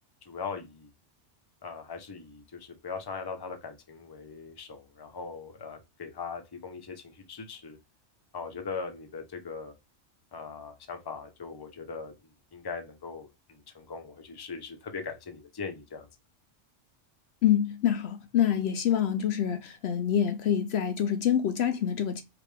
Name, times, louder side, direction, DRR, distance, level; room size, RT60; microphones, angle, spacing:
voice 1, 0.3-0.9 1.6-7.8 8.3-9.7 10.3-12.1 12.5-13.3 13.7-16.1, left 5 dB, 25° left, 0.7 m, -40 dB
voice 2, 17.4-22.2, left 9 dB, 70° left, 0.8 m, -26 dB
5.0 x 2.6 x 3.2 m
omnidirectional pair, 1.2 m